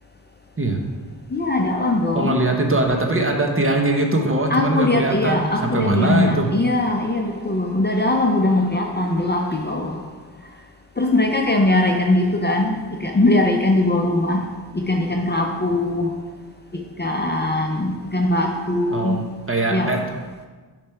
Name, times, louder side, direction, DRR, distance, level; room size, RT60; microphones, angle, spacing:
voice 1, 1.3-2.3 4.5-10.0 11.0-14.4 14.7-16.1 17.0-19.2 19.7-20.1, left 2 dB, 25° left, 2 dB, 0.6 m, -20 dB
voice 2, 2.1-6.5 18.9-20.0, right 2 dB, 30° right, 2 dB, 0.9 m, -21 dB
6.6 x 3.4 x 5.6 m, 1.4 s
wide cardioid pair, 80°, 41 cm